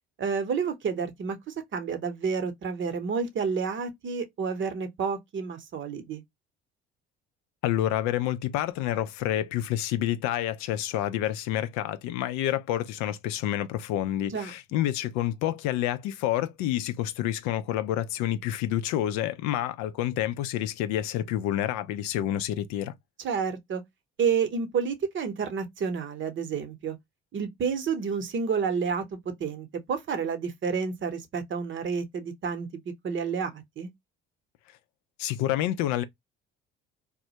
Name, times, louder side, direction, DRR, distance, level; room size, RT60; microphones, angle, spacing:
voice 1, 0.2-6.2 14.3-14.5 23.2-23.8 24.2-27.0 27.3-32.7 33.0-33.9, right 6 dB, 40° right, 0.8 m, -30 dB
voice 2, 7.6-22.9 35.2-36.0, left 12 dB, 70° left, 0.5 m, -28 dB
2.2 x 2.0 x 2.7 m
hypercardioid pair, 65°, 30 cm